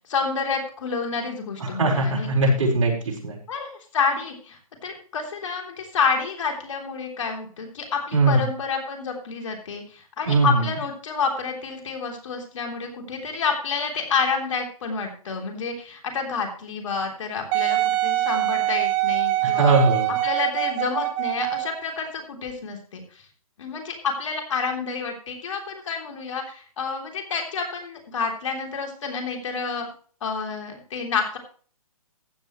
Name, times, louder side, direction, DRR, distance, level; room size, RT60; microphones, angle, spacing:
voice 1, 0.1-2.5 3.5-19.7 20.2-23.2 23.6-29.8 30.2-31.4, left 5 dB, 55° left, 3 dB, 3.4 m, -29 dB
voice 2, 1.6-3.4 8.1-8.4 10.3-10.5 19.4-20.1, right 3 dB, 60° right, 0 dB, 4.6 m, -20 dB
Wind instrument woodwind instrument, 17.5-21.8 22.5-22.6, right 16 dB, 20° right, 0.7 m, -24 dB
15.0 x 9.1 x 3.1 m, 0.42 s
hypercardioid pair, 150°, 19 cm